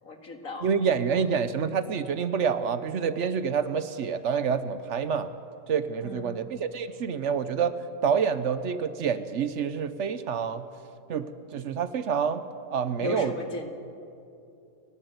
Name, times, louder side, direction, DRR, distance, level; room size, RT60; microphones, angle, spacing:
voice 1, 0.0-1.4 6.0-6.9 13.0-13.7, left 2 dB, 80° left, 4 dB, 2.5 m, -38 dB
voice 2, 0.6-5.3 5.7-7.7 8.0-10.7 11.1-12.4 12.7-13.3, right 6 dB, 65° right, 12 dB, 1.1 m, -27 dB
30.0 x 12.0 x 8.0 m, 2.7 s
omnidirectional pair, 1.4 m